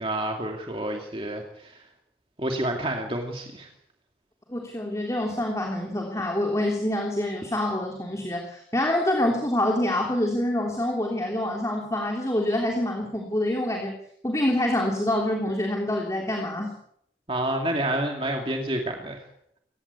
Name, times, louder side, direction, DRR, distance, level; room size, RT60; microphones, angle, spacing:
voice 1, 0.0-1.8 2.4-3.7 17.3-19.2, right 1 dB, 30° right, 2 dB, 2.4 m, -29 dB
voice 2, 4.5-14.0 14.2-16.8, left 1 dB, 15° left, 1 dB, 3.1 m, -26 dB
25.5 x 16.0 x 8.3 m, 0.73 s
head